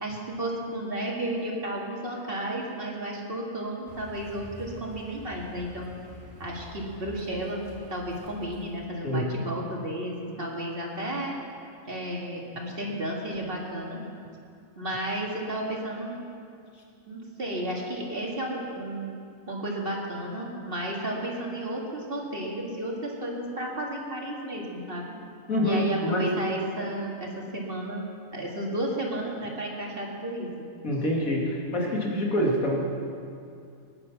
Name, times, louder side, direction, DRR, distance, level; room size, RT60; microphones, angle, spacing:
voice 1, 0.0-5.9 6.4-7.6 7.9-11.4 11.9-14.0 14.8-16.2 17.1-19.2 19.5-25.1 25.6-28.1 28.3-30.5, right 1 dB, 45° right, -2 dB, 2.2 m, -33 dB
Car, 3.9-9.0, equal, 70° right, 2.6 m, -46 dB
voice 2, 25.5-26.4 30.8-32.8, equal, 80° left, -2 dB, 2.7 m, -26 dB
19.5 x 9.7 x 5.9 m, 2.4 s
omnidirectional pair, 1.4 m